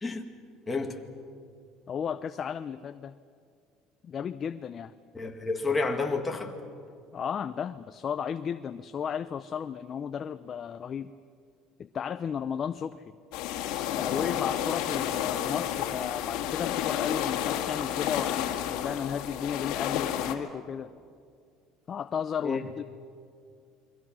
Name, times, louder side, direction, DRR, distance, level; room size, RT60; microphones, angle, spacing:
voice 1, 0.7-1.0 5.1-6.5 22.4-22.6, left 3 dB, 15° left, 2.0 m, -30 dB
voice 2, 1.9-3.2 4.0-4.9 7.1-11.1 11.8-13.0 13.9-20.9 21.9-22.8, left 7 dB, 35° left, 0.5 m, -34 dB
sound 1, 13.3-20.4, left 11 dB, 70° left, 2.0 m, -31 dB
29.0 x 22.5 x 6.2 m
cardioid pair, 140°, 0 cm